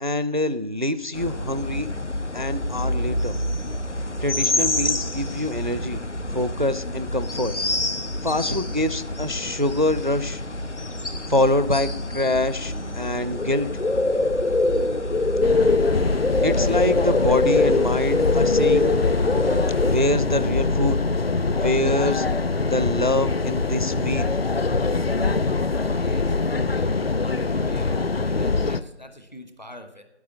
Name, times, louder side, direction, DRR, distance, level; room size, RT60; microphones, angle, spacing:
voice 1, 0.0-1.9 2.3-3.4 4.2-6.0 6.3-7.5 8.2-10.4 11.3-13.7 16.4-18.9 19.8-21.0 21.5-22.3 22.6-24.3, left 1 dB, 45° right, 14 dB, 0.4 m, -25 dB
sound 1, 1.2-20.0, left 2 dB, 85° left, 1.2 m, -25 dB
sound 2, 15.4-28.8, left 3 dB, 60° left, 0.5 m, -24 dB
voice 2, 25.7-26.4 26.6-30.0, left 1 dB, 40° left, 7 dB, 1.0 m, -44 dB
9.4 x 8.3 x 7.1 m, 0.98 s
figure-of-eight pair, 175°, 34 cm